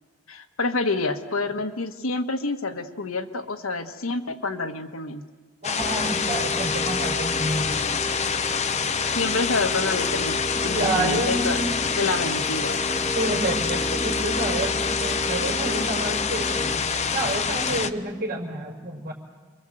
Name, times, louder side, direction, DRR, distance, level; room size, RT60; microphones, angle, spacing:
voice 1, 0.3-5.2 9.1-10.4 10.6-11.6 12.0-12.8, left 3 dB, 90° left, 7 dB, 1.5 m, -27 dB
sound 1, 5.6-17.9, left 6 dB, 35° left, 0.8 m, -26 dB
voice 2, 5.6-7.7 10.5-11.7 13.1-16.8 17.1-19.1, right 2 dB, 45° right, 1 dB, 5.2 m, -29 dB
sound 2, 5.8-17.8, equal, 5° left, 1.9 m, -33 dB
28.0 x 23.0 x 7.9 m, 1.4 s
head